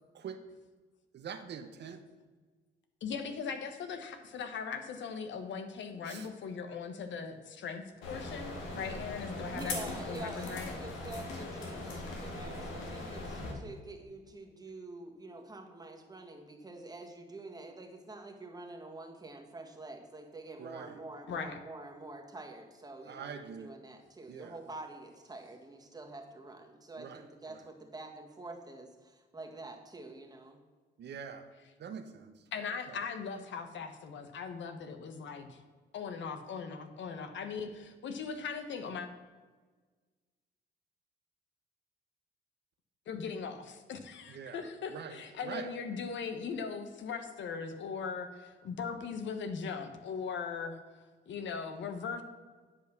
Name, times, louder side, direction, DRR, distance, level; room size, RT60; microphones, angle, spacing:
voice 1, 1.1-2.0 6.0-6.3 8.7-9.1 9.4-9.6 20.6-21.0 23.1-23.7 24.3-24.6 27.0-27.6 31.0-31.5 31.8-32.4 32.9-33.0 44.3-44.6 44.9-45.7, right 7 dB, 60° right, 8 dB, 0.9 m, -44 dB
voice 2, 3.0-10.7 21.3-21.6 32.5-35.6 35.9-39.1 43.1-50.8 51.3-52.2, left 5 dB, 70° left, 8 dB, 1.1 m, -39 dB
sound 1, 8.0-13.5, left 2 dB, 90° left, 1.9 m, -40 dB
voice 3, 9.5-30.6, right 2 dB, 20° right, 2 dB, 1.6 m, -47 dB
9.9 x 5.3 x 6.0 m, 1.4 s
cardioid pair, 90°, 20 cm